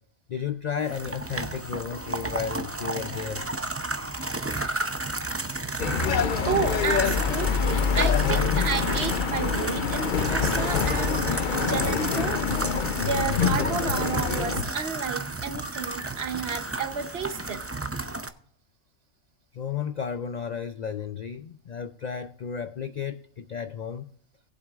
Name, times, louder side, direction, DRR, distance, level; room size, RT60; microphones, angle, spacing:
voice 1, 0.3-3.5 19.5-24.1, left 7 dB, 75° left, 0.3 m, -33 dB
sound 1, 0.8-18.3, right 2 dB, 20° right, 0.3 m, -32 dB
sound 2, 5.8-14.6, left 6 dB, 50° left, 0.7 m, -26 dB
voice 2, 6.4-12.4 13.0-17.7, right 6 dB, 55° right, 1.1 m, -31 dB
19.0 x 7.8 x 2.4 m
omnidirectional pair, 1.4 m